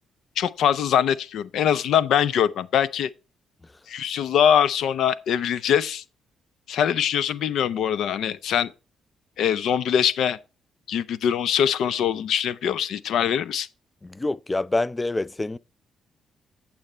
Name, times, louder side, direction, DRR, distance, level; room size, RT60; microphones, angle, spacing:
voice 1, 0.4-3.1 3.9-6.0 6.7-8.7 9.4-10.4 10.9-13.7, left 9 dB, 75° left, 0.6 m, -23 dB
voice 2, 14.0-15.6, left 2 dB, 15° left, 0.4 m, -26 dB
8.9 x 7.1 x 4.3 m
cardioid pair, 90°, 0 cm